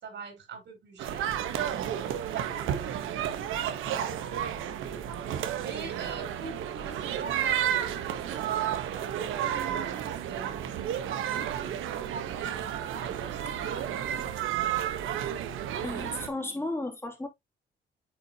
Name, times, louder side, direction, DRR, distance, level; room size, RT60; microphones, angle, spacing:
voice 1, 0.0-2.8 3.7-4.4 5.6-11.7 12.1-14.3, right 5 dB, 65° right, 4.4 m, -44 dB
sound 1, 1.0-16.3, right 10 dB, 85° right, 1.1 m, -32 dB
voice 2, 15.8-17.3, left 2 dB, 10° left, 2.6 m, -34 dB
9.1 x 4.2 x 2.8 m
cardioid pair, 90°, 20 cm